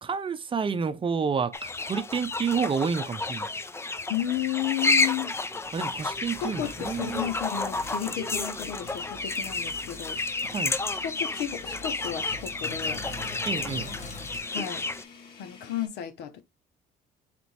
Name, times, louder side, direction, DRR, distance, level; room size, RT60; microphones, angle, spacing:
voice 1, 0.0-3.5 5.7-7.3 10.5-10.8 13.5-13.9, right 6 dB, 30° right, 0.7 m, -29 dB
sound 1, 1.5-15.0, left 3 dB, 15° left, 0.5 m, -31 dB
sound 2, 2.3-2.5 3.0-3.1 5.0-15.9, left 5 dB, 70° left, 2.4 m, -50 dB
voice 2, 4.1-5.3 6.4-10.2 11.0-13.0 14.5-14.8 15.4-16.4, left 11 dB, 90° left, 0.9 m, -33 dB
Sink (filling or washing), 5.6-14.4, left 2 dB, 45° left, 1.3 m, -45 dB
4.4 x 2.9 x 4.1 m
cardioid pair, 110°, 17 cm